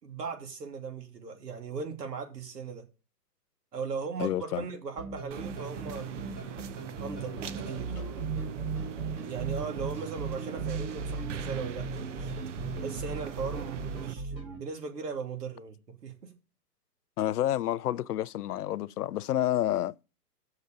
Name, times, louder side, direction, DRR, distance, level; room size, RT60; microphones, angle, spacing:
voice 1, 0.0-2.9 3.7-6.2 7.0-7.9 9.2-12.3 12.8-16.3, right 5 dB, 75° right, 2.9 m, -38 dB
voice 2, 4.2-4.6 8.0-8.1 17.2-19.9, left 12 dB, 70° left, 0.5 m, -29 dB
sound 1, 5.0-14.6, right 4 dB, 20° right, 1.4 m, -37 dB
sound 2, 5.3-14.1, right 9 dB, 50° right, 0.7 m, -41 dB
7.1 x 6.6 x 6.9 m
hypercardioid pair, 150°, 49 cm